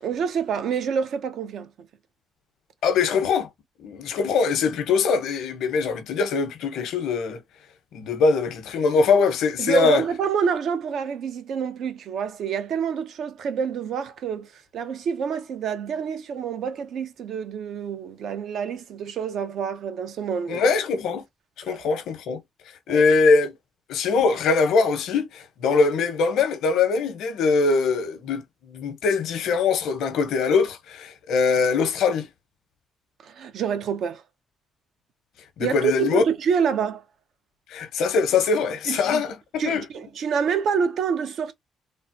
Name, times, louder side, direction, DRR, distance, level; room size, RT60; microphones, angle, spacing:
voice 1, 0.0-1.7 9.6-20.6 21.7-21.8 22.9-23.1 33.2-34.2 35.6-37.0 38.9-39.2 39.6-41.5, right 6 dB, 70° right, 0.8 m, -27 dB
voice 2, 2.8-3.5 3.8-7.4 7.9-10.0 20.5-21.2 21.6-22.4 22.9-23.5 23.9-32.3 35.6-36.2 37.7-39.8, left 4 dB, 80° left, 0.9 m, -22 dB
3.6 x 2.0 x 2.7 m
cardioid pair, 90°, 0 cm